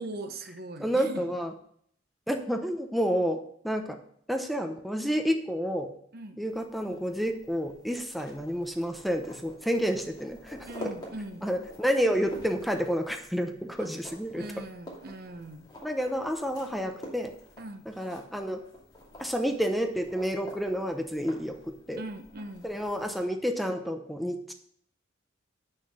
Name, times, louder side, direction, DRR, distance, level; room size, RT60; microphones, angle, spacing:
voice 1, 0.0-1.3 6.1-6.4 10.7-11.5 13.8-13.9 14.3-15.7 17.6-17.8 22.0-22.6, right 2 dB, 50° right, 8 dB, 0.8 m, -40 dB
voice 2, 0.8-1.5 2.3-4.0 4.3-5.9 6.4-10.9 11.4-14.6 15.8-17.3 17.9-18.6 19.2-21.6 21.9-22.0 22.6-24.5, equal, ahead, 4 dB, 0.8 m, -30 dB
sound 1, 6.5-23.2, equal, 20° left, 2.6 m, -48 dB
8.3 x 6.6 x 5.5 m, 0.63 s
head